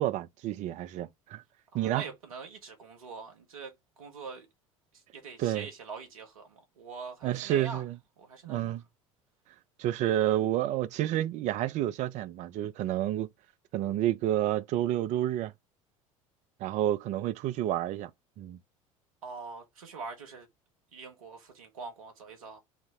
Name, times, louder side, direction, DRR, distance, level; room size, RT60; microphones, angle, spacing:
voice 1, 0.0-1.4 1.7-2.0 5.4-5.7 7.2-8.0 8.4-8.8 9.8-13.3 13.7-15.5 16.6-18.1 18.4-18.6, right 13 dB, 40° right, 0.4 m, -29 dB
voice 2, 1.7-4.5 4.9-7.8 8.2-8.7 19.2-20.5 20.9-22.6, right 4 dB, 75° right, 0.9 m, -44 dB
4.0 x 2.0 x 3.9 m
figure-of-eight pair, 65°, 18 cm